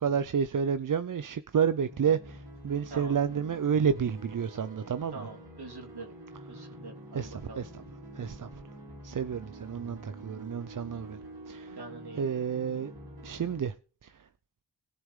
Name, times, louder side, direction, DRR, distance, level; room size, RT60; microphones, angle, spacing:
voice 1, 0.0-5.2 7.1-7.7 8.2-8.5 9.0-11.2 11.5-11.8 12.2-12.9 13.2-13.7 14.0-14.1, right 7 dB, 50° right, 0.6 m, -30 dB
sound 1, 1.6-13.6, right 1 dB, 85° right, 5.7 m, -47 dB
voice 2, 5.1-6.1 6.5-7.6 11.8-12.2, right 3 dB, 65° right, 3.3 m, -44 dB
20.0 x 6.9 x 3.7 m
cardioid pair, 55°, 43 cm